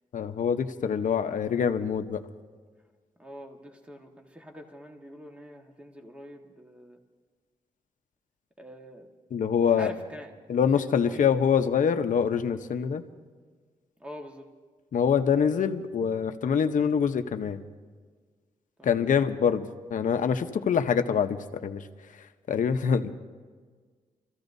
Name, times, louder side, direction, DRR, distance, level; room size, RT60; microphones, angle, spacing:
voice 1, 0.1-2.2 9.3-9.9 10.5-13.0 14.9-17.6 18.8-21.9 22.2-23.1, left 7 dB, 65° left, 8 dB, 0.9 m, -25 dB
voice 2, 3.2-7.0 8.6-9.1 9.7-11.3 14.0-14.5 18.8-18.9, equal, 10° right, 2 dB, 1.5 m, -45 dB
28.5 x 14.5 x 2.7 m, 1.5 s
cardioid pair, 90°, 14 cm